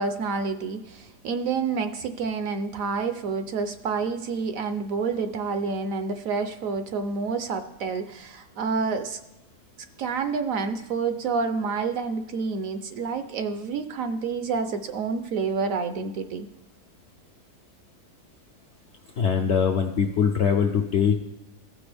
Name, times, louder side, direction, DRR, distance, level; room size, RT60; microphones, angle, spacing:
voice 1, 0.0-9.2 10.0-16.5, right 5 dB, 65° right, 9 dB, 0.9 m, -28 dB
voice 2, 19.2-21.1, left 7 dB, 70° left, 4 dB, 0.7 m, -22 dB
15.0 x 6.1 x 3.3 m, 0.99 s
omnidirectional pair, 1.7 m